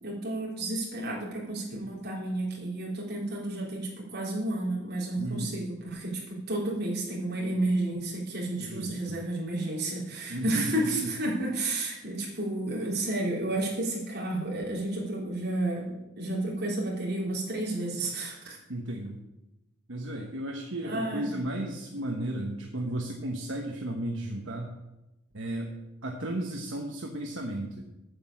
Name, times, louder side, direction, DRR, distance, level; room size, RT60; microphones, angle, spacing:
voice 1, 0.0-18.6 20.8-21.3, right 1 dB, 50° right, -4 dB, 3.5 m, -31 dB
voice 2, 5.2-5.5 8.6-9.2 10.3-11.1 18.7-19.2 19.9-24.7 25.3-25.7 26.0-27.8, right 1 dB, 70° right, 1 dB, 1.2 m, -34 dB
8.6 x 7.8 x 7.3 m, 0.98 s
head